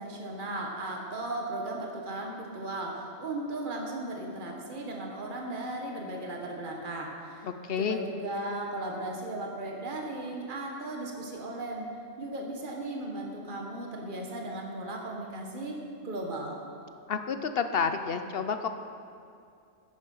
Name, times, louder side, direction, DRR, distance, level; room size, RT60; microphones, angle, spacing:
voice 1, 0.0-7.4 7.8-15.8 16.0-16.6, right 2 dB, 35° right, 0 dB, 1.7 m, -36 dB
voice 2, 7.4-8.0 17.1-18.7, left 6 dB, 50° left, 8 dB, 0.8 m, -30 dB
14.0 x 10.5 x 5.6 m, 2.4 s
omnidirectional pair, 1.4 m